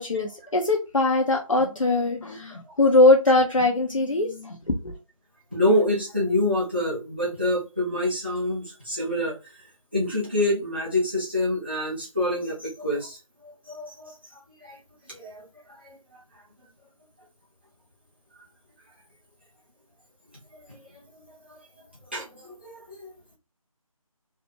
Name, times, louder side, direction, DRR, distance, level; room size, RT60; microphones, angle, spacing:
voice 1, 0.0-4.9, left 2 dB, 60° left, 0.7 m, -21 dB
voice 2, 5.5-9.3 9.9-13.2 13.7-13.9 14.6-14.7 15.2-15.4 15.8-15.9 22.1-23.1, left 1 dB, 20° right, 0.5 m, -26 dB
3.2 x 2.1 x 2.8 m
figure-of-eight pair, 165°, 18 cm